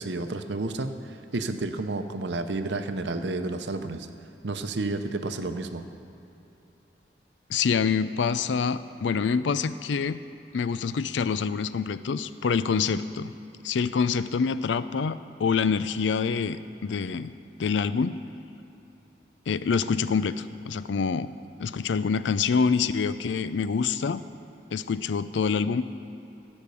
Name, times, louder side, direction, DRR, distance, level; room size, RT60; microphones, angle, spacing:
voice 1, 0.0-4.1 4.4-5.9, right 2 dB, 75° right, 8 dB, 0.7 m, -31 dB
voice 2, 7.5-10.2 10.5-13.3 13.6-17.3 17.6-18.2 19.5-21.3 21.6-24.2 24.7-25.8, left 5 dB, 85° left, 14 dB, 0.4 m, -26 dB
15.5 x 5.4 x 6.9 m, 3.0 s
head